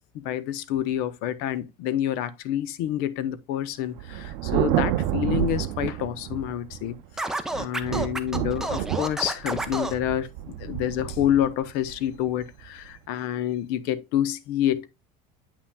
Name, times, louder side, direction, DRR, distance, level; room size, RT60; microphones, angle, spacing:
voice 1, 0.1-7.0 7.5-14.9, left 11 dB, 65° left, 0.7 m, -28 dB
Thunder, 4.0-7.1 7.5-12.9, right 13 dB, 85° right, 0.5 m, -30 dB
Scratching (performance technique), 7.2-10.0, right 2 dB, 5° right, 0.4 m, -30 dB
8.4 x 5.8 x 2.2 m
cardioid pair, 175°, 17 cm